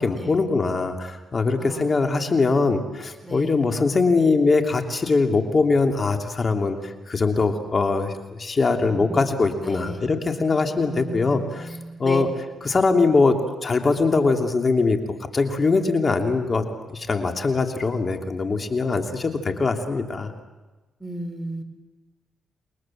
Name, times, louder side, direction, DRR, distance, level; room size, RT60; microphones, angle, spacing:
voice 1, 0.0-12.3 12.6-13.3 13.6-15.0 15.3-16.6 16.9-20.3, left 3 dB, 40° left, 4 dB, 3.0 m, -22 dB
voice 2, 1.6-2.1 3.2-3.6 8.9-10.0 10.7-12.2 21.0-21.6, right 1 dB, 5° right, 6 dB, 4.8 m, -35 dB
29.5 x 22.0 x 7.6 m, 1.2 s
cardioid pair, 80°, 0 cm